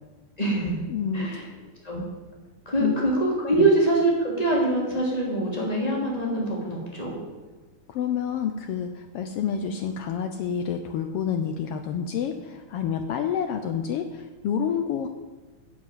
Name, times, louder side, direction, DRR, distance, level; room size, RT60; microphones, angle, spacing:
voice 1, 0.4-0.8 1.1-1.4 1.8-2.0 2.6-7.2, right 2 dB, 15° left, -3 dB, 2.8 m, -24 dB
voice 2, 0.9-1.4 2.8-3.0 3.6-3.7 7.9-15.1, left 7 dB, 80° left, 7 dB, 1.3 m, -28 dB
10.0 x 7.4 x 7.5 m, 1.2 s
omnidirectional pair, 3.3 m